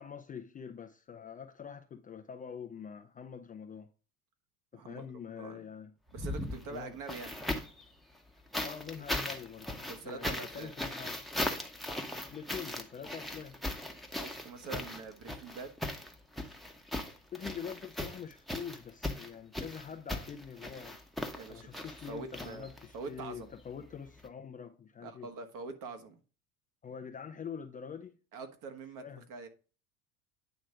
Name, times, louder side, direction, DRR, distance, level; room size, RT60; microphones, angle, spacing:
voice 1, 0.0-3.9 4.7-5.9 6.7-6.9 8.6-11.2 12.3-13.6 17.3-21.0 21.5-25.3 26.8-28.1 29.0-29.2, left 7 dB, 20° left, 0.5 m, -45 dB
voice 2, 4.7-5.1 5.4-5.7 6.1-7.3 9.9-10.7 14.1-15.7 21.3-23.5 25.0-26.2 28.3-29.5, right 4 dB, 45° right, 1.5 m, -44 dB
sound 1, 6.1-7.8 8.5-23.0 24.2-24.3, left 1 dB, ahead, 1.0 m, -38 dB
9.1 x 3.1 x 4.9 m
hypercardioid pair, 80°, 44 cm